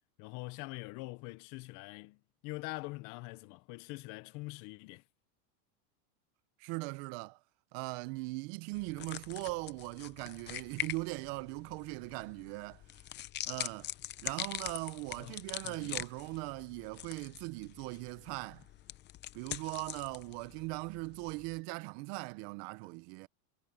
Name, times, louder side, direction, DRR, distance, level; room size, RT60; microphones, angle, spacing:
voice 1, 0.2-5.0 15.2-16.0, left 23 dB, 45° left, 1.0 m, -44 dB
voice 2, 6.6-7.4 7.7-12.8 13.5-13.9 14.2-18.7 19.3-23.3, right 25 dB, 45° right, 0.7 m, -40 dB
sound 1, 8.7-21.6, left 14 dB, 25° left, 0.7 m, -44 dB
supercardioid pair, 145°, 42 cm